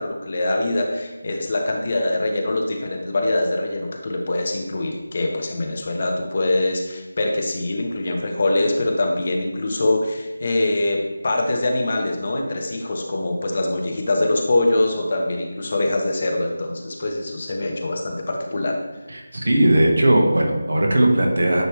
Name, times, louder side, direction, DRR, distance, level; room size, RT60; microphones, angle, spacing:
voice 1, 0.0-11.0 11.2-18.8, left 2 dB, 45° left, 2 dB, 1.0 m, -23 dB
voice 2, 19.1-21.6, right 1 dB, 70° right, 1 dB, 1.4 m, -18 dB
9.1 x 3.3 x 3.3 m, 1.1 s
figure-of-eight pair, 160°, 0 cm